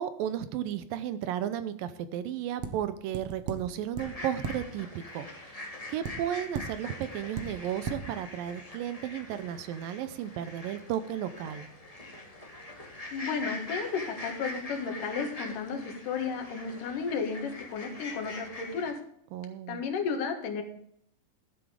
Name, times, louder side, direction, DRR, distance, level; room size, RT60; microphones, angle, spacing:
voice 1, 0.0-5.6 5.9-11.7 19.3-19.8, right 10 dB, 80° right, 13 dB, 2.3 m, -34 dB
sound 1, 2.6-2.7 3.1-3.6 3.9-4.0 4.4-4.5 6.0-6.1 6.5-6.6 7.0-7.1 7.3-7.5 7.8-8.0, right 7 dB, 60° right, 1.8 m, -34 dB
sound 2, 4.0-18.9, left 2 dB, 25° left, 0.8 m, -43 dB
voice 2, 13.1-19.0 19.7-20.6, left 5 dB, 65° left, 4 dB, 3.1 m, -33 dB
13.0 x 7.8 x 5.1 m, 0.70 s
omnidirectional pair, 4.2 m